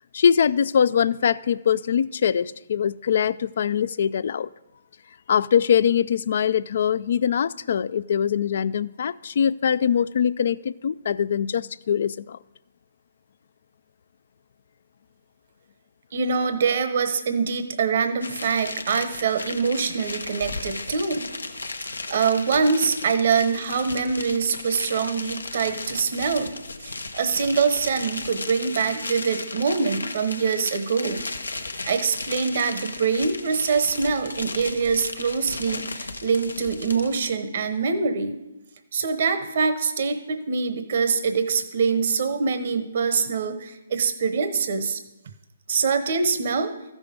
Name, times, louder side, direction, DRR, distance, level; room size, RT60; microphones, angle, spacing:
voice 1, 0.1-4.5 5.3-12.4, left 8 dB, 60° left, 0.3 m, -22 dB
voice 2, 16.1-21.3 22.1-26.6 26.8-31.2 31.6-38.4 38.9-45.0 45.7-46.7, right 5 dB, 55° right, 0.9 m, -24 dB
sound 1, 18.2-37.3, left 3 dB, 90° left, 0.8 m, -35 dB
14.0 x 6.2 x 5.1 m
figure-of-eight pair, 140°, 0 cm